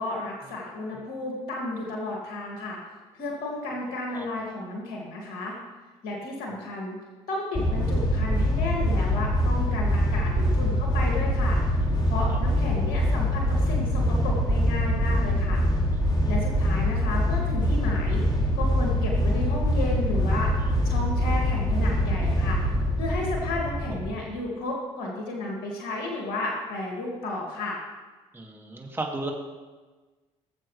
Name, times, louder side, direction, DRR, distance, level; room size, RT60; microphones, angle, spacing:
voice 1, 0.0-2.8 3.1-5.5 6.0-7.0 7.3-11.6 12.1-15.6 16.3-20.6 20.8-22.6 23.0-27.8, left 2 dB, 70° left, -2 dB, 2.5 m, -32 dB
sound 1, 7.5-24.1, equal, 25° left, 2.5 m, -24 dB
voice 2, 28.3-29.3, right 2 dB, 15° right, 0 dB, 2.4 m, -34 dB
19.5 x 7.4 x 3.4 m, 1.3 s
hypercardioid pair, 60°, 15 cm